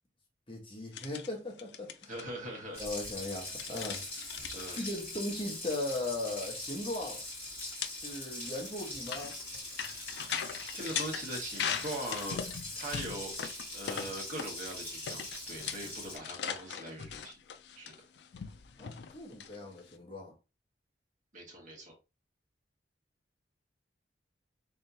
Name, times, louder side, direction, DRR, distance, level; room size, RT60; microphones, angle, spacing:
voice 1, 0.5-2.1 2.7-4.0 4.8-7.2 8.0-9.4 18.8-20.3, left 1 dB, 30° left, 1.2 m, -38 dB
sound 1, 0.9-1.3 1.6-2.2 3.3-4.9 5.7-6.0 6.3-6.4 6.7-6.8 7.5-14.7 15.1-19.9, left 8 dB, 70° left, 0.4 m, -40 dB
voice 2, 2.1-2.8 4.5-4.8 10.4-17.4 17.8-17.9 21.3-21.9, right 1 dB, 45° right, 1.5 m, -41 dB
Water tap faucet, 2.7-16.2, left 1 dB, 10° left, 2.3 m, -42 dB
3.6 x 3.4 x 2.7 m
head